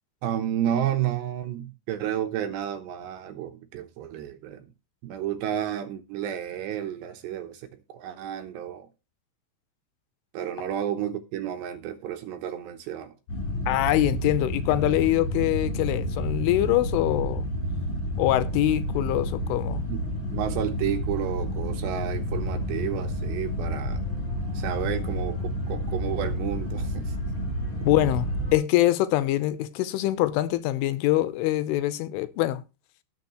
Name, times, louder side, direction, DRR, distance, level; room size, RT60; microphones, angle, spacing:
voice 1, 0.2-4.7 5.0-8.9 10.3-13.1 19.9-20.0 20.3-24.0 24.5-27.1, right 10 dB, 75° right, 2.8 m, -31 dB
sound 1, 13.3-28.6, equal, 35° left, 4.5 m, -30 dB
voice 2, 13.7-17.5 18.2-19.9 27.8-32.6, left 15 dB, 80° left, 3.3 m, -24 dB
19.0 x 7.1 x 3.0 m
omnidirectional pair, 5.7 m